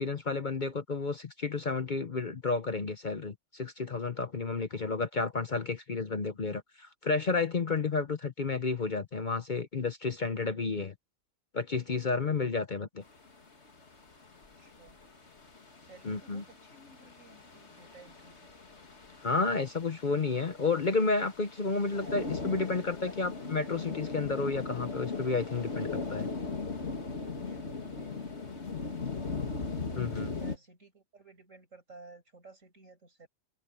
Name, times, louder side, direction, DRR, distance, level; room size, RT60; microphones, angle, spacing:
voice 1, 0.0-10.9 11.5-13.0 16.0-16.4 19.2-26.3 29.9-30.3, left 4 dB, 40° left, 0.9 m, -31 dB
sound 1, 13.0-30.6, left 4 dB, 55° left, 2.6 m, -39 dB
voice 2, 14.5-15.0 15.8-18.5 22.0-22.6 23.0-23.1 27.2-28.2 28.5-29.4 30.4-33.3, right 3 dB, 70° right, 6.2 m, -55 dB
open air
omnidirectional pair, 1.4 m